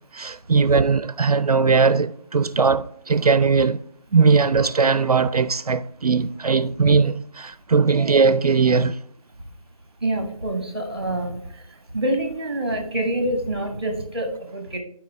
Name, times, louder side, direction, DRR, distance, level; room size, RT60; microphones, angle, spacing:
voice 1, 0.1-3.8 4.1-9.0, right 4 dB, 75° right, 0.4 m, -19 dB
voice 2, 10.0-11.4 11.9-14.8, right 1 dB, 15° right, 0.9 m, -26 dB
11.0 x 4.8 x 3.2 m
figure-of-eight pair, 175°, 19 cm